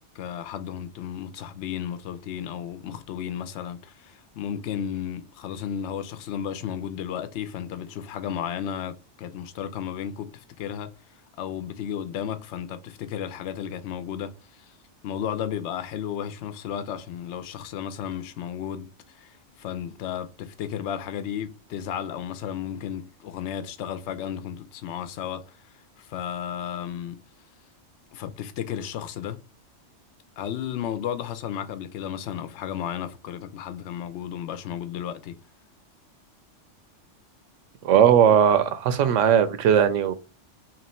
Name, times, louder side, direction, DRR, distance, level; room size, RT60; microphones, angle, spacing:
voice 1, 0.1-10.9 11.4-14.3 14.6-14.8 15.0-25.6 26.0-27.2 28.1-29.4 30.4-35.4, left 9 dB, 70° left, 0.8 m, -33 dB
voice 2, 37.8-40.1, right 8 dB, 85° right, 1.0 m, -18 dB
3.0 x 2.9 x 4.3 m
omnidirectional pair, 1.3 m